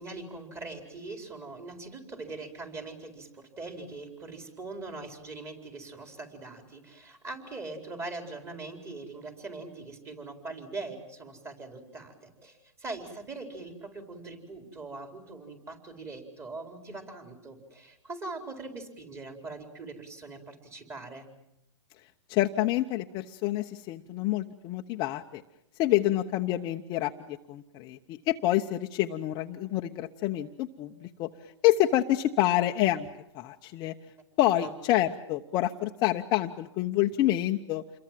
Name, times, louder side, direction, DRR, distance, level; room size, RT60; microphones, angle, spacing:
voice 1, 0.0-21.3 34.6-34.7, right 3 dB, 15° right, 5 dB, 4.4 m, -42 dB
voice 2, 22.3-25.4 25.8-31.3 31.6-33.1 33.3-33.9 34.4-37.8, left 14 dB, 25° left, 4 dB, 1.0 m, -27 dB
28.5 x 22.5 x 7.6 m, 0.83 s
hypercardioid pair, 150°, 16 cm